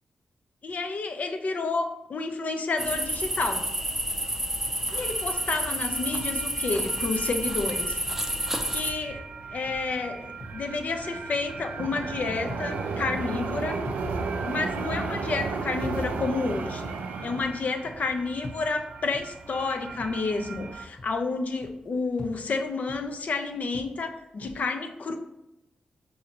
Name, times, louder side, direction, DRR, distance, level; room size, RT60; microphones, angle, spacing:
voice 1, 0.6-3.6 4.9-8.0 8.7-9.2 9.5-13.8 14.4-16.9 17.2-25.2, left 3 dB, 65° left, 5 dB, 0.5 m, -30 dB
sound 1, 2.8-8.9, right 1 dB, 10° right, 0.5 m, -29 dB
sound 2, 5.0-20.8, right 4 dB, 90° right, 0.3 m, -35 dB
sound 3, 9.2-20.7 21.0-24.5, left 2 dB, 25° left, 1.0 m, -47 dB
4.8 x 2.7 x 2.9 m, 0.89 s
supercardioid pair, 45°, 3 cm